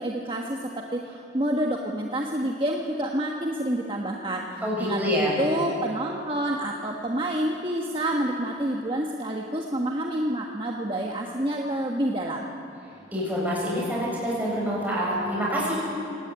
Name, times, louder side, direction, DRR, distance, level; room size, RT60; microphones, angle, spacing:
voice 1, 0.0-12.5, right 1 dB, 25° right, 0 dB, 1.4 m, -28 dB
voice 2, 4.6-5.3 13.1-15.7, equal, 10° right, -5 dB, 7.8 m, -26 dB
25.0 x 18.0 x 9.6 m, 2.7 s
head